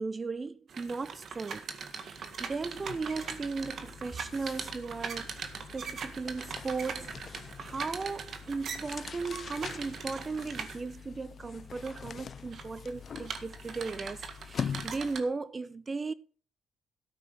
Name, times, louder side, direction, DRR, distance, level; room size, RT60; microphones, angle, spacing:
voice 1, 0.0-1.7 1.9-5.4 5.7-16.1, right 4 dB, 30° right, 0.6 m, -37 dB
sound 1, 0.7-11.0 11.6-12.0 12.4-15.2, right 6 dB, 60° right, 1.7 m, -41 dB
sound 2, 1.4-1.6 1.9-15.3, left 7 dB, 50° left, 0.5 m, -44 dB
13.5 x 6.2 x 6.7 m
cardioid pair, 90°, 0 cm